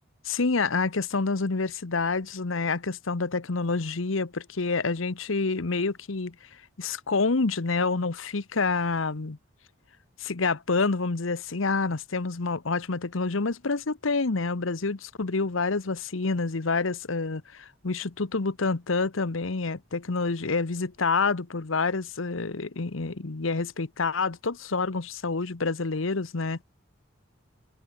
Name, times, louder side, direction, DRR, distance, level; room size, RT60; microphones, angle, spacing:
voice 1, 0.2-6.3 6.8-9.4 10.2-26.6, left 4 dB, 85° left, 1.0 m, -28 dB
head